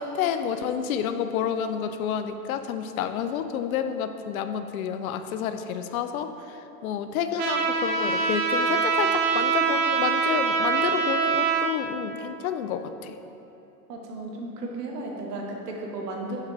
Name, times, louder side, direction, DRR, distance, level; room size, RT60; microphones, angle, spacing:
voice 1, 0.0-6.3 6.8-13.1, left 8 dB, 65° left, 9 dB, 0.5 m, -29 dB
Trumpet, 7.4-11.7, right 5 dB, 25° right, 0.5 m, -24 dB
voice 2, 13.9-16.4, right 2 dB, 80° right, 0 dB, 1.2 m, -34 dB
6.5 x 4.6 x 3.6 m, 2.9 s
hypercardioid pair, 110°, 47 cm